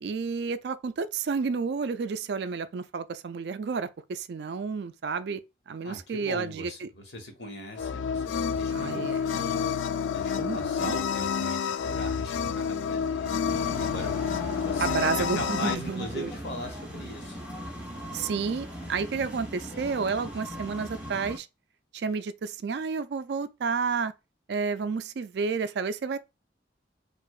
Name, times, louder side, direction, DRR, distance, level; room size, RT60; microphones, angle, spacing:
voice 1, 0.0-5.4 5.7-6.9 8.7-9.2 10.3-10.9 14.8-16.3 18.1-21.5 21.9-24.1 24.5-26.2, right 5 dB, 65° right, 0.4 m, -31 dB
voice 2, 5.8-17.7, left 1 dB, 65° left, 1.2 m, -40 dB
sound 1, 7.8-15.7, left 7 dB, 90° left, 0.3 m, -29 dB
sound 2, 13.5-21.4, equal, 5° right, 0.9 m, -39 dB
4.7 x 2.5 x 2.3 m
head